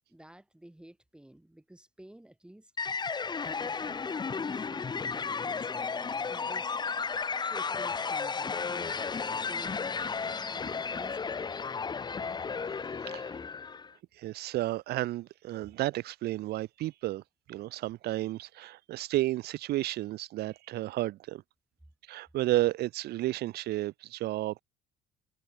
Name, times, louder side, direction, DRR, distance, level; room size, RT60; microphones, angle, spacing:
voice 1, 0.1-2.7 3.6-6.7 7.4-11.5, right 1 dB, 5° right, 7.6 m, -52 dB
sound 1, 2.8-13.9, left 5 dB, 25° left, 1.1 m, -34 dB
voice 2, 14.2-17.2 17.5-21.4 22.1-24.6, right 16 dB, 70° right, 0.9 m, -32 dB
cardioid pair, 110°, 17 cm